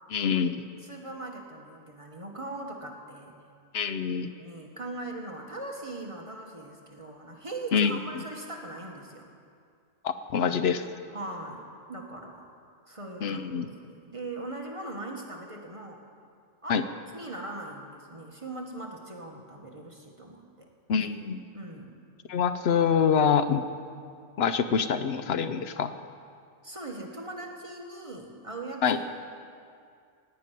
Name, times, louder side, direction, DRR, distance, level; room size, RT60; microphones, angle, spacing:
voice 1, 0.1-0.6 3.7-4.3 7.7-8.0 10.0-10.8 13.2-13.7 16.7-16.8 20.9-21.4 22.3-23.6 24.4-25.9 28.8-29.0, left 7 dB, 60° left, 10 dB, 0.8 m, -25 dB
voice 2, 0.8-3.4 4.3-9.3 11.1-11.6 11.9-12.5 12.9-16.0 16.6-20.7 21.5-21.9 26.6-29.0, right 2 dB, 25° right, 1 dB, 1.2 m, -40 dB
17.5 x 6.0 x 9.0 m, 2.3 s
omnidirectional pair, 1.3 m